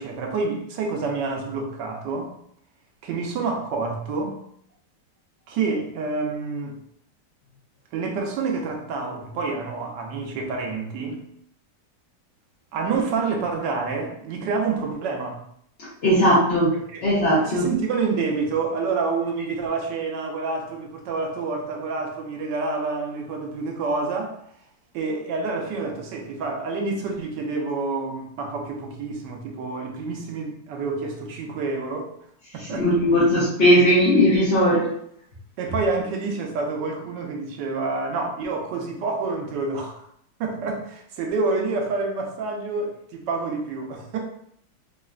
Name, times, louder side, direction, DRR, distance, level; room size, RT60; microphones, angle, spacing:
voice 1, 0.0-2.3 3.0-4.4 5.5-6.8 7.9-11.2 12.7-15.4 16.7-17.0 17.4-24.3 24.9-32.1 32.5-32.9 35.6-40.0 40.4-44.2, right 4 dB, 80° right, 1.3 m, -28 dB
voice 2, 16.0-16.7 17.0-17.7 32.8-34.9, equal, 50° left, 0.8 m, -18 dB
3.8 x 2.1 x 2.3 m
omnidirectional pair, 1.9 m